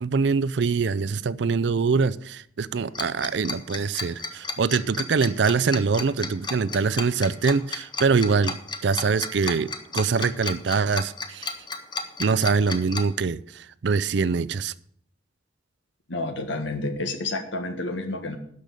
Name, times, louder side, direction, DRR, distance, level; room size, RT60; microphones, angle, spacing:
voice 1, 0.0-11.5 12.2-14.7, right 5 dB, 65° right, 17 dB, 0.4 m, -24 dB
Tick-tock, 2.9-13.0, left 3 dB, 25° left, 0.9 m, -32 dB
voice 2, 16.1-18.4, left 2 dB, 75° left, 6 dB, 1.5 m, -30 dB
12.0 x 5.3 x 6.7 m, 0.65 s
head